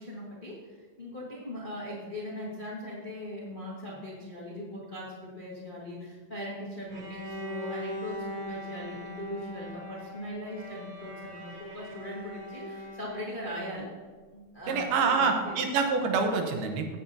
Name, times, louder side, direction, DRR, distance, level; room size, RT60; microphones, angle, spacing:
voice 1, 0.0-13.9 14.3-15.6, equal, 85° left, -5 dB, 0.4 m, -40 dB
Bowed string instrument, 6.9-13.6, left 1 dB, 50° right, 4.0 m, -41 dB
voice 2, 14.7-17.0, right 4 dB, 85° right, 4 dB, 3.0 m, -26 dB
15.5 x 8.6 x 2.8 m, 1.4 s
omnidirectional pair, 4.3 m